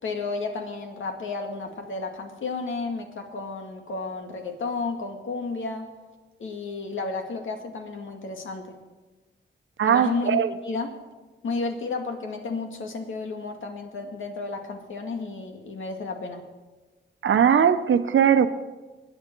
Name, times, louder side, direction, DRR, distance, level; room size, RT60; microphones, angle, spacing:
voice 1, 0.0-5.9 6.4-8.8 9.8-10.4 10.6-11.0 11.4-16.4, left 3 dB, 90° left, 4 dB, 2.1 m, -32 dB
voice 2, 9.8-10.5 17.2-18.5, right 8 dB, 75° right, 10 dB, 0.9 m, -19 dB
25.0 x 10.0 x 4.7 m, 1.2 s
wide cardioid pair, 125°, 20 cm